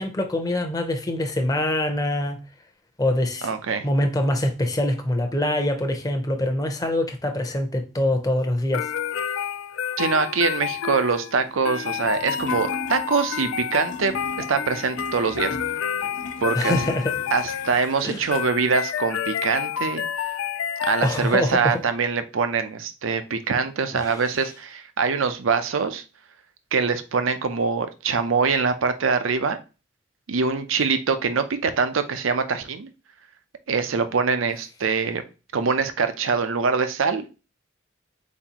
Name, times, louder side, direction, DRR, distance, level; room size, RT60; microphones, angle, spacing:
voice 1, 0.0-2.4 3.0-3.5 3.8-8.9 16.5-17.1 18.0-18.2 21.0-21.8, left 1 dB, 20° left, 0.6 m, -24 dB
voice 2, 3.4-3.9 10.0-14.1 14.5-15.6 16.4-16.8 17.3-20.0 20.9-26.0 26.7-29.6 30.3-32.9 33.7-35.2 35.5-37.3, right 5 dB, 85° right, 0.6 m, -24 dB
sound 1, 8.7-21.5, left 9 dB, 90° left, 0.4 m, -29 dB
sound 2, 11.4-18.4, left 1 dB, 70° left, 0.9 m, -39 dB
4.2 x 4.2 x 2.9 m
head